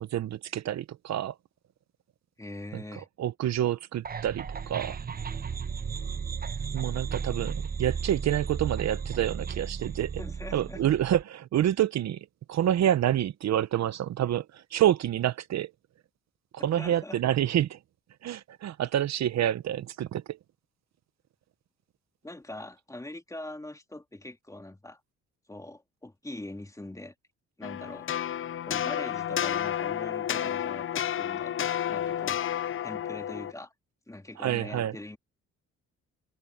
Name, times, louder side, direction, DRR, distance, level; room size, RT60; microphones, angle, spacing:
voice 1, 0.0-1.3 2.7-4.9 6.7-10.1 10.5-12.2 12.5-15.7 16.6-17.8 18.2-20.4 34.4-34.9, right 11 dB, 60° right, 0.8 m, -28 dB
voice 2, 2.4-3.1 10.2-10.8 16.6-17.2 18.8-18.9 22.2-25.0 25.5-27.1 27.6-28.1 28.7-31.6 31.9-32.4 32.8-33.7 34.1-35.2, left 1 dB, 10° left, 2.8 m, -42 dB
sound 1, 4.0-11.2, right 6 dB, 30° right, 0.9 m, -34 dB
sound 2, 27.6-33.5, left 10 dB, 45° left, 0.6 m, -31 dB
cardioid pair, 90°, 30 cm